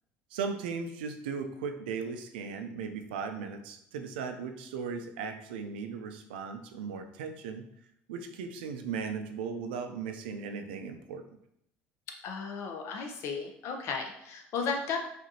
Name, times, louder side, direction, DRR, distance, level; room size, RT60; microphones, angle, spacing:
voice 1, 0.3-7.7 8.1-11.2, right 5 dB, 85° right, 6 dB, 0.4 m, -37 dB
voice 2, 12.2-15.0, left 5 dB, 60° left, 3 dB, 0.7 m, -34 dB
4.9 x 2.6 x 2.8 m, 0.74 s
supercardioid pair, 80°, 5 cm